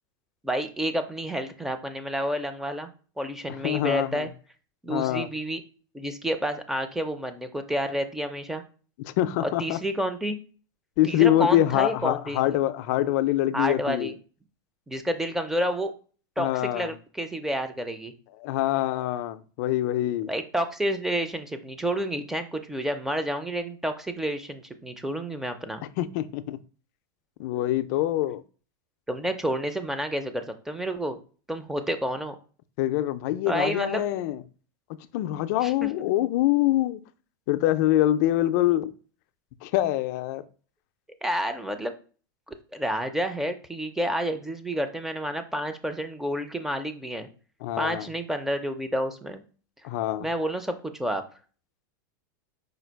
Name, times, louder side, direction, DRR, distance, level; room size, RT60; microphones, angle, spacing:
voice 1, 0.4-2.9 3.2-4.3 4.8-5.6 5.9-8.6 9.4-10.4 11.0-12.4 13.5-14.1 14.9-15.9 16.4-18.1 20.3-25.8 29.1-31.2 31.5-32.4 33.5-34.0 35.6-35.9 41.2-41.9 42.7-47.3 47.8-49.4 50.2-51.2, equal, 5° right, 0.4 m, -29 dB
voice 2, 3.5-4.3 4.9-5.3 9.0-9.8 11.0-14.1 16.4-16.9 18.4-20.3 26.0-26.6 27.4-28.4 32.8-34.4 35.1-37.0 37.5-38.9 39.6-40.4 47.6-48.1 49.8-50.3, left 14 dB, 55° left, 0.4 m, -25 dB
5.0 x 2.3 x 4.5 m
supercardioid pair, 145°, 11 cm